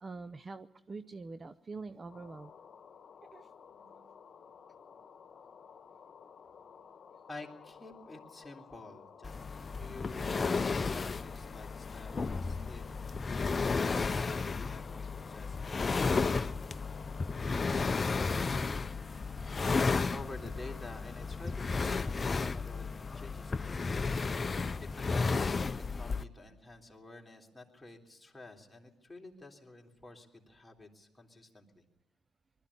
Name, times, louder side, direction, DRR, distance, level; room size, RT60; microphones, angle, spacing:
voice 1, 0.0-2.5 3.3-3.5, right 3 dB, 30° right, 13 dB, 0.6 m, -44 dB
sound 1, 2.1-18.7, left 6 dB, 45° left, 1.5 m, -54 dB
voice 2, 3.7-4.1 7.3-16.0 20.1-31.9, left 2 dB, 10° left, 0 dB, 3.5 m, -50 dB
sound 2, 9.2-26.2, left 4 dB, 30° left, 0.6 m, -33 dB
20.5 x 13.0 x 9.8 m, 1.0 s
supercardioid pair, 75°, 0 cm